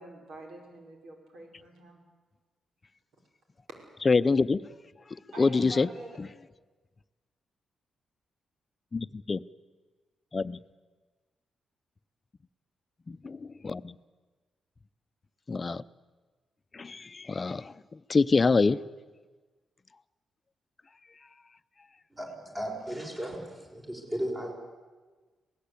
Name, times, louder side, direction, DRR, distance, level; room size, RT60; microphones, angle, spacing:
voice 1, 0.0-2.0 5.3-6.2, right 2 dB, 85° right, 2 dB, 5.7 m, -46 dB
voice 2, 4.1-4.6 5.4-5.9 6.2-6.3 8.9-9.4 10.3-10.6 13.1-14.0 15.5-15.8 16.7-17.7 18.1-18.8, left 4 dB, 30° left, 15 dB, 0.6 m, -25 dB
voice 3, 22.1-24.5, equal, 20° right, -1 dB, 5.5 m, -35 dB
26.5 x 17.5 x 8.5 m, 1.3 s
cardioid pair, 95°, 0 cm